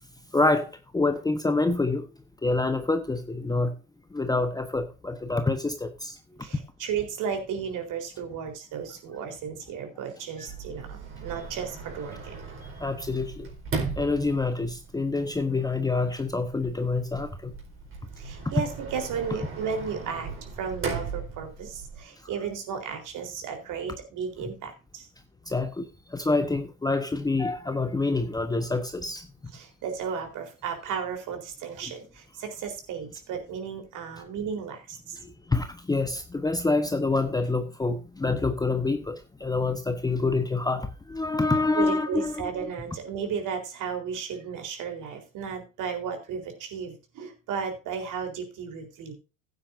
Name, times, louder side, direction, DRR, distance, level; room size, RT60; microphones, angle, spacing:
voice 1, 0.3-2.1 2.4-3.7 4.1-6.2 12.8-13.5 14.0-17.5 25.5-29.3 35.1-42.7, left 3 dB, 10° left, 7 dB, 1.1 m, -27 dB
voice 2, 6.4-12.4 18.2-25.1 29.5-35.2 41.7-49.1, right 6 dB, 50° right, 4 dB, 4.1 m, -34 dB
Sliding door, 10.5-22.0, right 4 dB, 30° right, 4.5 m, -38 dB
15.5 x 9.3 x 2.7 m, 0.31 s
hypercardioid pair, 85°, 41 cm